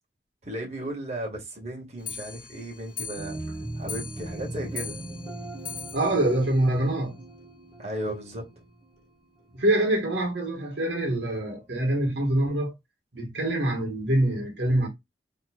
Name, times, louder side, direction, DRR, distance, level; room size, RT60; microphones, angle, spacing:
voice 1, 0.4-3.4 3.8-5.0 7.8-8.4, right 1 dB, 40° right, 1.7 m, -35 dB
Clock, 2.0-7.5 7.8-7.9 8.2-8.3 8.6-8.7 9.0-9.1 9.8-9.9 10.6-10.7 11.3-11.4, left 6 dB, 50° left, 1.0 m, -41 dB
sound 1, 3.2-9.7, right 2 dB, 5° right, 1.4 m, -40 dB
voice 2, 5.9-7.2 9.5-12.7 13.1-14.9, right 1 dB, 90° right, 1.5 m, -25 dB
4.2 x 3.2 x 2.3 m
head